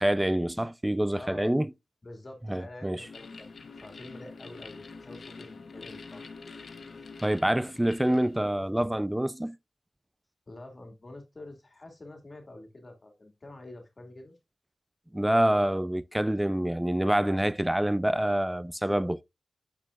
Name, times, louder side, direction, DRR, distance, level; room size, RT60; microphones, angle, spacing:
voice 1, 0.0-1.7 2.5-3.1 7.2-9.6 15.1-19.2, right 1 dB, 10° right, 0.3 m, -26 dB
voice 2, 1.1-1.5 2.0-3.5 3.7-6.3 7.4-7.6 10.5-14.4, left 2 dB, 40° left, 2.3 m, -46 dB
sound 1, 2.9-8.7, left 4 dB, 65° left, 0.9 m, -46 dB
9.1 x 6.7 x 2.4 m
wide cardioid pair, 80°, 0 cm